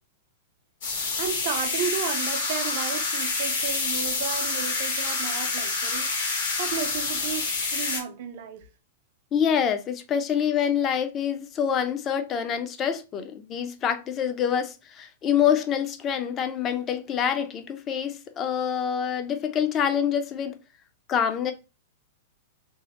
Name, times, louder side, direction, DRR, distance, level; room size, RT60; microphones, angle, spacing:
sound 1, 0.8-8.0, left 3 dB, 70° left, 1.0 m, -27 dB
voice 1, 1.2-6.1 6.6-8.7, right 8 dB, 60° right, 0.5 m, -33 dB
voice 2, 9.3-20.6 21.1-21.5, left 8 dB, 30° left, 0.4 m, -26 dB
3.0 x 2.0 x 2.9 m
hypercardioid pair, 125°, 0 cm